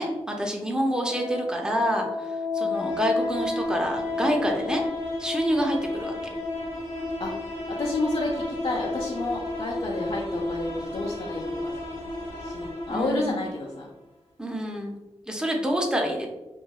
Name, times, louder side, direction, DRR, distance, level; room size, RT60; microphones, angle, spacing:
voice 1, 0.0-2.3 2.5-4.8 5.2-6.1 12.9-13.3 14.4-15.0 15.3-16.3, equal, 5° right, 1 dB, 0.6 m, -27 dB
sound 1, 0.9-13.8, left 2 dB, 80° left, 0.9 m, -31 dB
voice 2, 2.6-3.0 7.2-7.3 7.8-11.7 12.4-13.9, left 2 dB, 55° left, -5 dB, 0.5 m, -30 dB
3.0 x 2.6 x 2.3 m, 1.0 s
cardioid pair, 45°, 12 cm